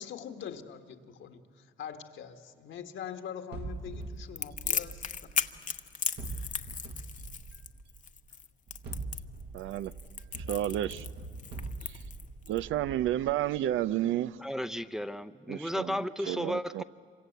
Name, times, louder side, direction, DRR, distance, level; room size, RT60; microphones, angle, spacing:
voice 1, 0.0-5.0 5.3-5.7, left 8 dB, 75° left, 1.8 m, -43 dB
sound 1, 3.5-5.7 6.2-8.0 8.7-13.8, right 3 dB, 55° right, 1.6 m, -43 dB
Crackle, 4.4-12.6, left 7 dB, 40° left, 0.9 m, -36 dB
voice 2, 9.5-9.9 10.5-11.1 11.8-12.0 12.5-14.4 15.5-16.8, right 12 dB, 85° right, 0.6 m, -31 dB
voice 3, 14.4-16.8, equal, ahead, 0.7 m, -34 dB
26.5 x 25.0 x 8.0 m
cardioid pair, 90°, 20 cm